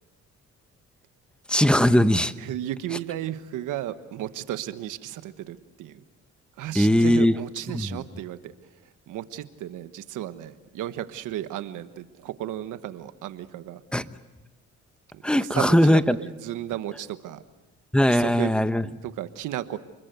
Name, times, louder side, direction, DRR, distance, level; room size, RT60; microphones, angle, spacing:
voice 1, 1.5-2.3 6.7-7.4 7.7-8.0 13.9-14.1 15.2-16.2 17.9-18.9, left 1 dB, 5° left, 12 dB, 1.0 m, -20 dB
voice 2, 2.4-6.0 6.6-13.8 15.1-17.4 18.1-18.5 19.0-19.8, right 12 dB, 90° right, 11 dB, 1.3 m, -34 dB
29.0 x 21.5 x 7.9 m, 1.2 s
cardioid pair, 90°, 30 cm